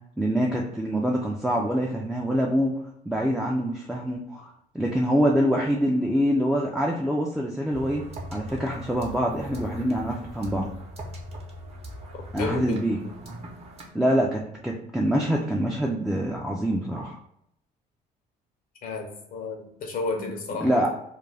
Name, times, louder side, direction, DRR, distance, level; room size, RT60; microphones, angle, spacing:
voice 1, 0.2-2.8 3.1-8.0 8.3-10.7 12.3-13.0 13.9-17.2 20.2-20.3 20.6-20.9, equal, 5° right, -1 dB, 0.3 m, -25 dB
sound 1, 7.7-13.9, equal, 40° right, 0.7 m, -40 dB
voice 2, 12.4-13.1 18.8-20.9, left 3 dB, 55° left, 2 dB, 0.5 m, -32 dB
2.4 x 2.2 x 3.2 m, 0.76 s
cardioid pair, 110°, 17 cm